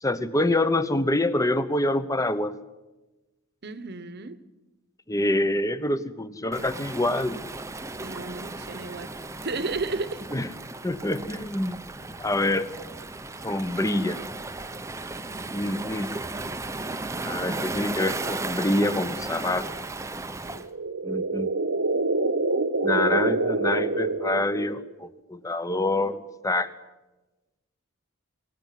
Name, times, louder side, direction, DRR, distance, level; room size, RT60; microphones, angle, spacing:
voice 1, 0.0-2.5 5.1-7.4 10.3-10.5 10.8-11.9 12.2-12.7 13.4-14.2 15.5-16.1 17.2-19.7 21.0-21.5 22.8-26.7, left 1 dB, 15° left, 13 dB, 0.9 m, -26 dB
voice 2, 3.6-4.4 8.0-9.1 9.4-10.2, right 3 dB, 50° right, 14 dB, 1.2 m, -33 dB
Waves surf, 6.5-20.7, right 2 dB, 15° right, 0.7 m, -35 dB
sound 1, 20.5-24.9, right 2 dB, 70° right, 1.3 m, -26 dB
22.5 x 17.5 x 9.3 m, 1.1 s
head